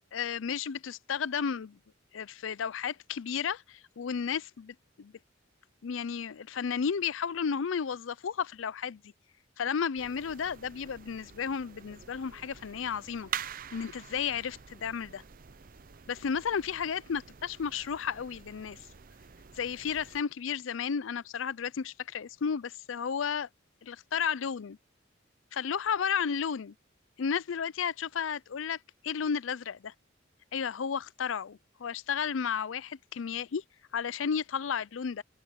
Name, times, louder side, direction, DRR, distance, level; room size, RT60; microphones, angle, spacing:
voice 1, 0.1-1.8 2.1-5.1 5.8-9.0 9.6-13.3 13.7-15.2 16.1-18.8 19.6-23.5 23.8-24.8 25.5-26.7 27.2-28.8 29.0-29.9 30.5-33.6 33.9-35.2, left 7 dB, 80° left, 0.5 m, -33 dB
sound 1, 10.0-20.2, right 8 dB, 45° right, 0.6 m, -46 dB
head